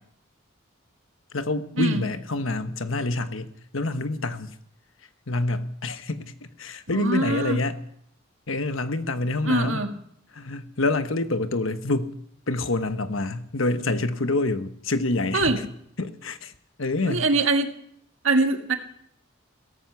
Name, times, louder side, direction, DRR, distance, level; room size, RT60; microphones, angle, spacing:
voice 1, 1.3-4.6 5.3-7.8 8.5-9.9 10.3-12.1 12.5-15.6 16.0-16.5 16.8-17.3, left 2 dB, 75° left, 10 dB, 1.2 m, -27 dB
voice 2, 6.9-7.6 9.5-9.9 15.3-15.6 17.1-17.7 18.2-18.8, right 3 dB, 75° right, 5 dB, 1.8 m, -23 dB
17.0 x 14.5 x 5.8 m, 0.70 s
head